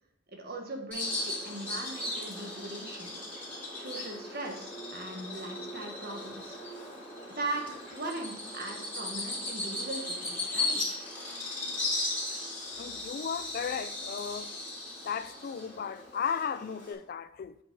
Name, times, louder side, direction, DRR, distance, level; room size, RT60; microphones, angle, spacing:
voice 1, 0.3-3.1 3.8-6.6 7.3-10.8, right 2 dB, 55° right, 1.4 m, -39 dB
Bird vocalization bird call bird song, 0.9-16.9, left 2 dB, 10° left, 3.2 m, -37 dB
voice 2, 12.8-14.5 15.0-17.6, left 7 dB, 50° left, 0.3 m, -35 dB
8.5 x 5.2 x 4.6 m
head